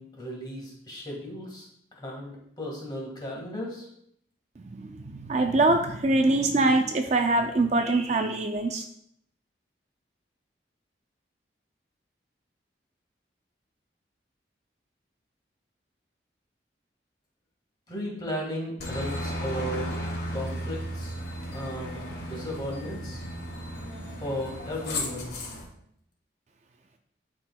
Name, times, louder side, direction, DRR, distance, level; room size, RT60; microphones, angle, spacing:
voice 1, 0.0-1.7 2.0-3.9 17.9-20.0 20.3-21.2 21.5-23.2 24.2-25.3, equal, 25° left, -2 dB, 1.7 m, -35 dB
voice 2, 4.7-8.8, right 2 dB, 40° right, 5 dB, 0.4 m, -24 dB
Aircraft, 18.8-25.6, equal, 60° left, 2.1 m, -34 dB
11.5 x 4.4 x 2.3 m, 0.72 s
head